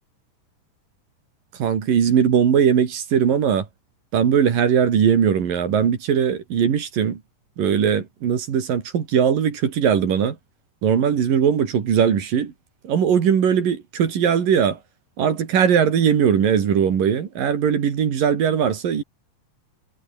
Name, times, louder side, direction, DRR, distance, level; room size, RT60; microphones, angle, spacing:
voice 1, 1.6-3.7 4.1-7.2 7.6-10.4 10.8-12.5 12.8-14.8 15.2-19.0, right 8 dB, 75° right, 4.4 m, -19 dB
omnidirectional pair, 3.9 m